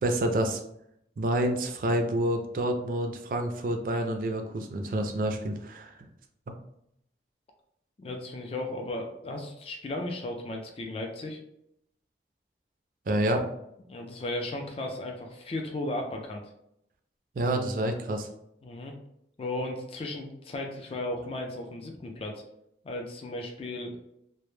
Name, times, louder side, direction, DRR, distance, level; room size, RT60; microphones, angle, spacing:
voice 1, 0.0-0.6 1.2-5.9 6.5-6.6 13.1-13.5 17.4-18.3, right 1 dB, 50° right, 5 dB, 0.3 m, -28 dB
voice 2, 8.0-11.4 13.9-16.4 18.6-19.0 19.4-22.4 22.8-23.9, left 1 dB, 35° left, 3 dB, 0.3 m, -35 dB
2.1 x 2.0 x 3.0 m, 0.76 s
head